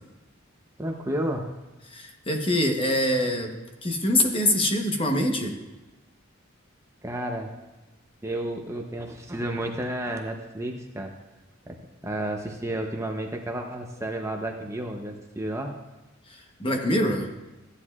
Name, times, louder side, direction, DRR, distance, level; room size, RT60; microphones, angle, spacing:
voice 1, 0.8-1.5 7.0-7.5 8.2-11.1 11.7-11.8 12.0-15.7, right 1 dB, 15° right, 2 dB, 0.7 m, -31 dB
voice 2, 1.9-3.5 3.8-5.6 16.6-17.3, left 1 dB, 25° left, 3 dB, 1.0 m, -24 dB
14.0 x 9.9 x 2.4 m, 1.1 s
head